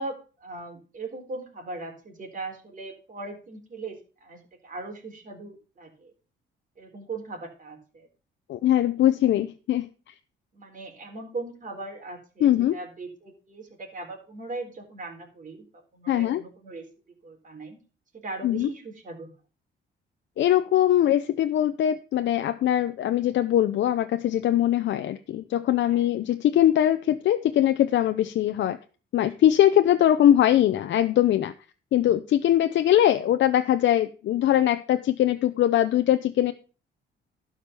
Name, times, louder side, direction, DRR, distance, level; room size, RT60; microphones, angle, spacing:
voice 1, 0.0-6.1 6.8-8.1 10.5-15.7 15.9-16.9 17.2-17.8 18.1-19.3 25.8-26.1, right 3 dB, 40° right, 2 dB, 4.0 m, -39 dB
voice 2, 8.5-10.1 12.4-12.8 16.1-16.4 18.4-18.7 20.4-28.8 29.1-31.5 31.9-36.5, left 11 dB, 65° left, 9 dB, 0.7 m, -22 dB
12.0 x 5.1 x 6.7 m, 0.36 s
cardioid pair, 90°, 20 cm